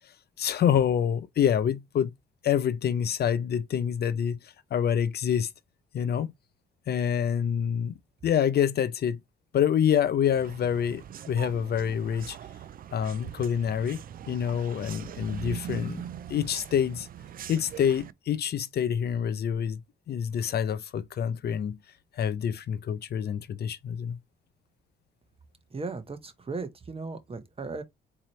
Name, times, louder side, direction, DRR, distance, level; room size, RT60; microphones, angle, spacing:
voice 1, 0.4-2.1 2.4-4.4 4.7-5.5 5.9-6.3 6.9-7.9 8.2-9.2 9.5-12.4 12.9-16.0 16.3-17.1 17.5-19.8 20.1-21.8 22.2-24.2, left 8 dB, 55° left, 0.5 m, -27 dB
sound 1, 10.3-18.1, right 10 dB, 50° right, 0.4 m, -41 dB
voice 2, 25.7-27.8, right 4 dB, 30° right, 1.0 m, -36 dB
4.1 x 2.9 x 3.0 m
cardioid pair, 90°, 20 cm